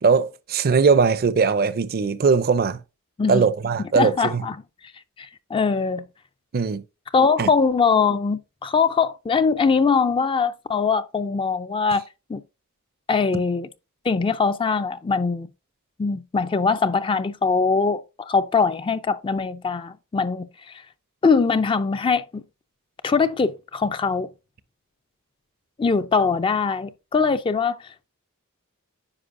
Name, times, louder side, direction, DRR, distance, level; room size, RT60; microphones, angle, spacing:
voice 1, 0.0-2.8 3.3-4.4 6.5-6.8 7.4-7.5, right 5 dB, 45° right, 0.4 m, -20 dB
voice 2, 4.0-4.6 5.2-6.0 7.1-12.0 12.3-12.4 13.1-13.7 14.1-15.5 16.0-20.5 21.2-22.4 23.0-24.3 25.8-27.8, left 5 dB, 25° left, 0.3 m, -22 dB
9.7 x 5.1 x 2.5 m
head